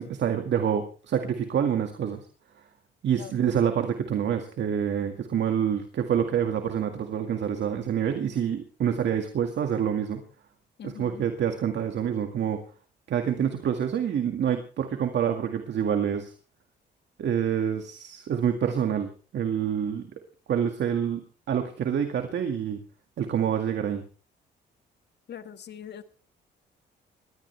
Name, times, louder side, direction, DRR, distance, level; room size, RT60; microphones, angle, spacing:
voice 1, 0.0-2.2 3.0-10.2 10.8-12.6 13.1-16.3 17.2-20.1 20.5-21.2 21.5-22.8 23.2-24.0, right 8 dB, 65° right, 6 dB, 2.0 m, -27 dB
voice 2, 3.1-3.5 10.8-11.2 25.3-26.0, left 9 dB, 60° left, 9 dB, 1.7 m, -42 dB
21.0 x 16.0 x 3.4 m, 0.39 s
cardioid pair, 90°, 20 cm